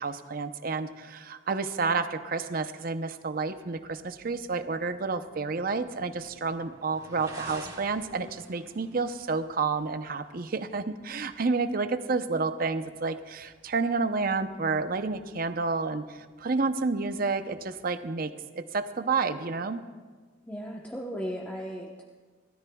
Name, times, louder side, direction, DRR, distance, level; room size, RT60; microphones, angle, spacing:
voice 1, 0.0-19.9, right 4 dB, 50° right, 9 dB, 0.7 m, -30 dB
sound 1, 3.3-17.8, right 2 dB, 20° right, 1.9 m, -53 dB
voice 2, 20.4-22.0, equal, 10° left, -2 dB, 1.0 m, -36 dB
30.0 x 13.5 x 2.3 m, 1.5 s
head